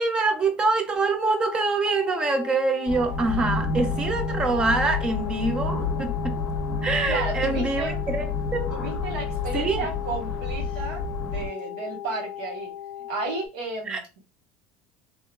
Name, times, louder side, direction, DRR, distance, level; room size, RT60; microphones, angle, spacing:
voice 1, 0.0-6.3 6.8-8.3 8.5-8.7 9.5-9.9 13.9-14.0, right 3 dB, 20° right, 0.3 m, -25 dB
sound 1, 1.2-13.5, left 13 dB, 70° left, 0.4 m, -37 dB
sound 2, 2.9-11.5, left 4 dB, 25° left, 0.6 m, -29 dB
voice 2, 7.1-8.0 8.7-12.7 13.1-14.2, right 3 dB, 80° right, 1.1 m, -33 dB
2.9 x 2.1 x 2.2 m
cardioid pair, 170°, 5 cm